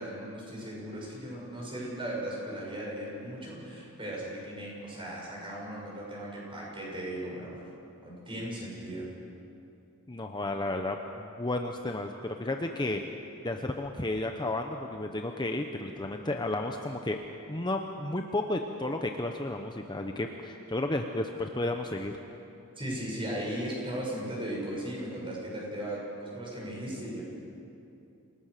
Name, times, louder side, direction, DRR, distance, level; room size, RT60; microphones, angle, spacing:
voice 1, 0.0-7.6 8.0-9.1 22.8-27.2, right 1 dB, 25° right, -3 dB, 7.0 m, -37 dB
voice 2, 10.1-13.0 13.4-17.2 17.5-22.1, left 2 dB, 20° left, 4 dB, 0.9 m, -32 dB
28.0 x 18.5 x 6.7 m, 2.8 s
head